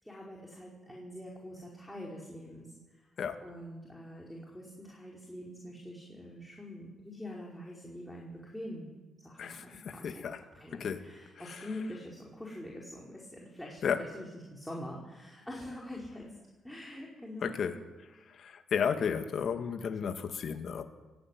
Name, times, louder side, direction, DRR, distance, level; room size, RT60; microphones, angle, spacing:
voice 1, 0.0-9.0 9.2-16.3 16.6-17.7, left 1 dB, 5° left, -3 dB, 5.1 m, -45 dB
voice 2, 9.4-10.4 10.8-11.0 11.5-11.6 13.8-14.0 17.4-17.7 18.3-20.8, left 7 dB, 55° left, 7 dB, 2.0 m, -33 dB
20.5 x 16.0 x 9.4 m, 1.2 s
cardioid pair, 90°, 0 cm